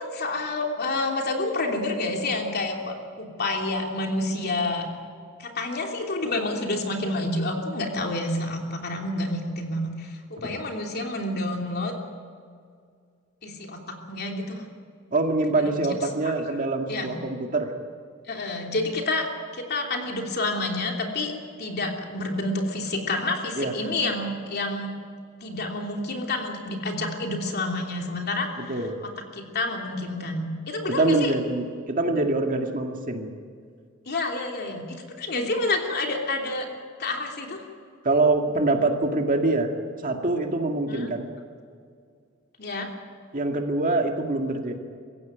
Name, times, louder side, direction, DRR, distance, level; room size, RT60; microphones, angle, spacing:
voice 1, 0.0-4.9 5.4-11.9 13.4-14.6 15.5-15.8 16.9-17.1 18.3-19.3 19.5-21.3 21.6-24.9 25.4-31.3 34.0-36.7 37.0-37.6 40.9-41.1 42.6-42.9, left 2 dB, 50° left, 2 dB, 3.1 m, -29 dB
voice 2, 15.1-17.7 23.6-23.7 28.6-29.0 30.9-33.3 38.0-39.7 40.0-41.3 43.3-44.8, right 2 dB, 40° right, 3 dB, 2.1 m, -24 dB
24.5 x 15.5 x 9.2 m, 2.1 s
head